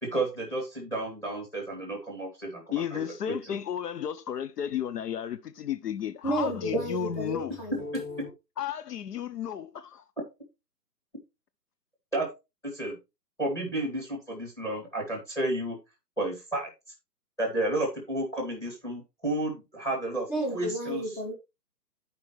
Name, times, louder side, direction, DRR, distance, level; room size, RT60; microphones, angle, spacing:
voice 1, 0.0-3.6 12.1-12.3 12.6-13.0 13.4-15.8 16.2-16.7 17.4-20.3 20.5-21.0, right 1 dB, 5° left, 2.5 m, -32 dB
voice 2, 2.7-7.6 8.6-10.0, left 9 dB, 75° left, 0.7 m, -33 dB
voice 3, 6.2-8.3 20.3-21.3, right 1 dB, 30° left, 2.6 m, -32 dB
12.5 x 5.3 x 3.2 m
hypercardioid pair, 155°, 48 cm